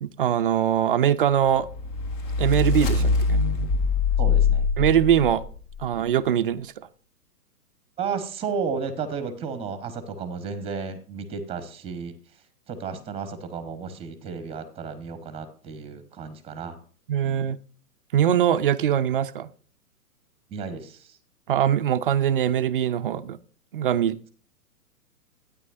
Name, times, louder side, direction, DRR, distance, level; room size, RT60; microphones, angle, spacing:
voice 1, 0.0-1.7 2.4-3.4 4.8-5.4 5.8-6.9 17.1-17.6 18.1-19.5 21.5-23.4 23.7-24.2, right 10 dB, 35° right, 0.5 m, -22 dB
sound 1, 1.6-5.8, left 4 dB, 35° left, 1.0 m, -23 dB
voice 2, 4.2-4.7 8.0-12.1 12.7-16.8 20.5-21.2, right 5 dB, 10° right, 1.1 m, -33 dB
12.5 x 9.6 x 2.5 m
figure-of-eight pair, 120°, 47 cm